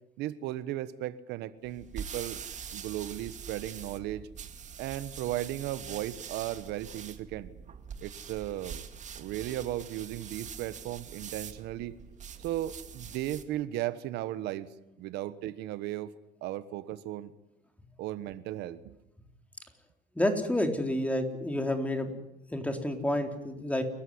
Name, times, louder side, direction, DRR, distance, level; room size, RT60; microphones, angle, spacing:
voice 1, 0.2-2.4 2.7-4.3 4.8-7.5 8.0-8.8 9.1-12.0 12.4-14.7 15.0-16.1 16.4-17.3 18.0-19.0, right 13 dB, 90° right, 14 dB, 1.3 m, -36 dB
sound 1, 1.6-13.5, right 7 dB, 45° right, 2.2 m, -44 dB
voice 2, 20.1-22.1 22.5-23.8, left 1 dB, 10° left, 5 dB, 3.9 m, -29 dB
29.5 x 15.0 x 9.7 m, 0.86 s
cardioid pair, 110°, 17 cm